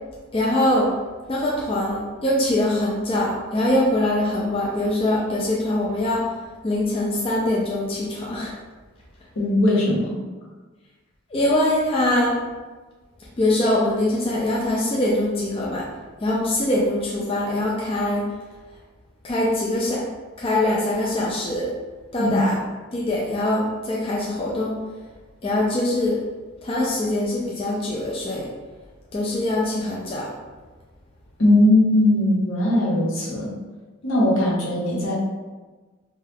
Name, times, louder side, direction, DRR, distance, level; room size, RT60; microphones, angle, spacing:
voice 1, 0.3-0.9 1.3-6.2 6.6-8.6 11.3-12.4 13.4-15.9 16.2-18.3 19.2-20.0 20.4-21.7 22.1-22.5 22.9-24.7 25.4-26.2 26.6-28.5 29.1-30.3, left 1 dB, 25° left, -4 dB, 0.3 m, -23 dB
voice 2, 9.3-10.2 22.2-22.4 31.4-33.5 34.0-35.1, left 1 dB, 80° left, -6 dB, 1.0 m, -19 dB
2.7 x 2.3 x 3.4 m, 1.3 s
head